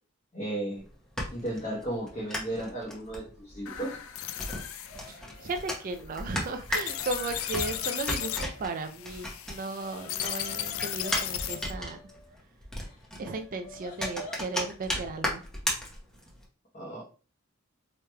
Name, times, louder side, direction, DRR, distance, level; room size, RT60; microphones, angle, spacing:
voice 1, 0.3-0.8 1.3-4.0 16.7-17.0, right 1 dB, 30° left, -5 dB, 1.0 m, -34 dB
sound 1, 0.7-9.9 10.2-16.4, left 1 dB, 5° left, 0.8 m, -36 dB
sound 2, 3.7-11.8, left 11 dB, 65° left, 0.4 m, -36 dB
sound 3, 4.5-5.9 6.3-9.0 9.3-12.3 12.8-14.5, left 2 dB, 85° left, 1.2 m, -47 dB
voice 2, 5.1-12.0 13.2-15.4, right 3 dB, 40° right, 6 dB, 0.3 m, -36 dB
4.7 x 3.0 x 2.2 m, 0.39 s
head